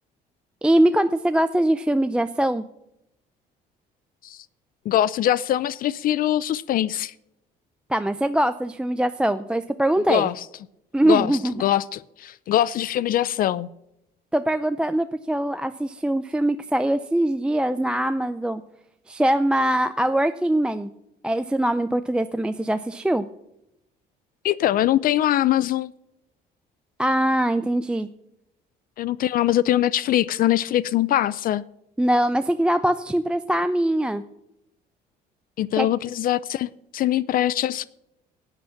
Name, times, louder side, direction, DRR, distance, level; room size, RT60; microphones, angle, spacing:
voice 1, 0.6-2.6 7.9-10.3 10.9-11.5 14.3-18.6 19.1-20.9 21.2-23.3 27.0-28.1 32.0-34.2 35.8-35.9, right 1 dB, 5° right, 0.4 m, -22 dB
voice 2, 4.9-7.1 10.1-10.3 11.0-11.3 11.6-13.7 24.4-25.9 29.0-31.6 35.6-37.9, left 12 dB, 55° left, 0.4 m, -22 dB
11.5 x 8.9 x 5.8 m
cardioid pair, 110°, 17 cm